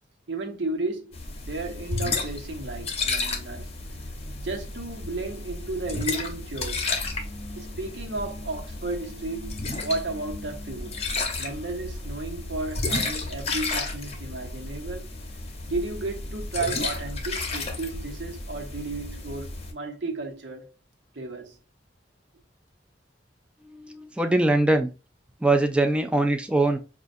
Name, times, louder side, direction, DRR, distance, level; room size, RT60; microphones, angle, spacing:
voice 1, 0.3-1.1 1.5-3.7 4.4-6.9 7.6-11.0 11.4-15.1 15.7-20.7 21.1-21.6, right 2 dB, 90° right, 0.9 m, -33 dB
sound 1, 1.1-19.7, left 3 dB, 35° left, 0.8 m, -32 dB
voice 2, 23.6-24.9 25.4-26.8, right 2 dB, 5° right, 0.3 m, -22 dB
5.2 x 2.4 x 2.5 m
head